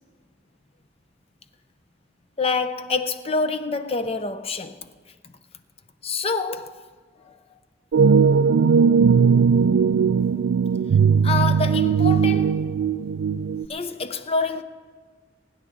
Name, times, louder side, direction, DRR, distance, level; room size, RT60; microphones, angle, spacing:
voice 1, 2.4-4.8 5.2-5.3 6.0-6.9 7.2-7.6 11.2-12.7 13.7-14.6, left 4 dB, 35° left, 0.7 m, -27 dB
sound 1, 7.9-13.7, right 6 dB, 90° right, 0.3 m, -18 dB
23.5 x 10.0 x 3.9 m
head